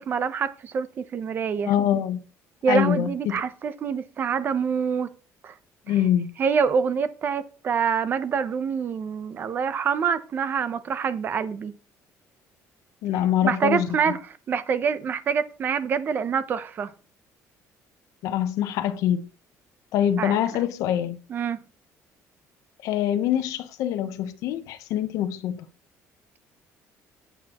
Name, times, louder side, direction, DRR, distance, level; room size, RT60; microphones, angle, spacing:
voice 1, 0.0-1.7 2.6-5.1 5.4-5.5 5.9-6.0 6.4-11.8 13.4-14.2 14.5-16.9 20.2-20.6 21.3-21.6, right 6 dB, 35° right, 0.7 m, -26 dB
voice 2, 1.7-2.2 2.7-3.4 5.9-6.3 13.0-13.9 18.2-19.2 19.9-21.2 22.8-25.7, left 10 dB, 75° left, 0.8 m, -24 dB
9.1 x 8.2 x 3.0 m
cardioid pair, 165°, 6 cm